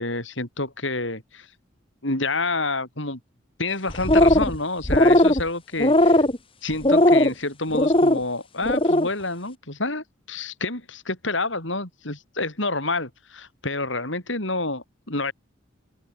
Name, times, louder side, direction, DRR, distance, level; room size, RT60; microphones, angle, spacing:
voice 1, 0.0-1.5 2.0-3.2 3.6-6.2 6.6-15.3, left 2 dB, 70° left, 7.2 m, -28 dB
sound 1, 3.9-4.6 4.8-5.4 5.8-6.4 6.8-7.3 7.7-8.2 8.6-9.1, left 1 dB, 25° left, 1.9 m, -17 dB
open air
head